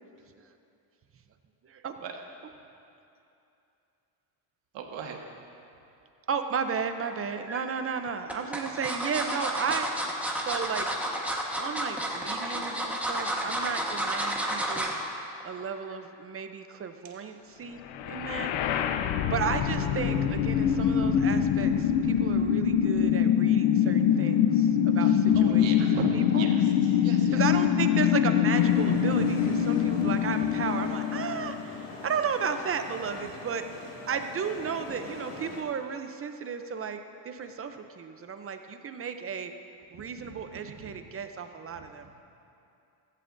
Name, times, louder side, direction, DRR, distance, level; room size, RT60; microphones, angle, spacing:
voice 1, 4.7-5.2 17.0-17.2 25.0-27.6 28.9-29.4 29.8-30.7 39.9-40.9 41.7-42.1, right 6 dB, 70° right, 2 dB, 1.6 m, -40 dB
voice 2, 6.3-9.9 10.4-10.9 11.2-11.3 11.5-14.9 15.4-18.5 19.3-26.0 26.3-26.5 27.3-31.7 32.0-33.6 34.1-37.0 37.2-39.5 39.9-42.2, right 6 dB, 30° right, 8 dB, 0.6 m, -34 dB
sound 1, 7.1-7.6 8.3-15.0 15.4-15.6 15.9-16.0, right 1 dB, 5° right, 1.3 m, -31 dB
sound 2, 17.9-31.9, left 9 dB, 75° left, 0.8 m, -24 dB
sound 3, 28.6-35.6, left 2 dB, 55° left, 1.9 m, -43 dB
15.0 x 15.0 x 2.6 m, 2.7 s
cardioid pair, 125°, 47 cm